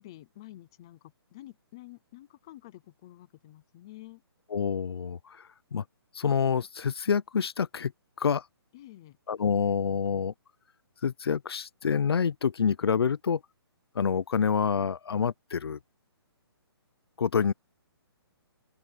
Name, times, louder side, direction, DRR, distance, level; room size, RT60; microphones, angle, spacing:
voice 1, 0.0-4.2 8.7-9.2, left 16 dB, 10° left, 0.5 m, -49 dB
voice 2, 4.5-5.8 6.1-7.9 8.2-8.5 9.3-10.3 11.0-13.4 13.9-15.8 17.2-17.5, left 6 dB, 70° left, 0.7 m, -27 dB
open air
hypercardioid pair, 180°, 14 cm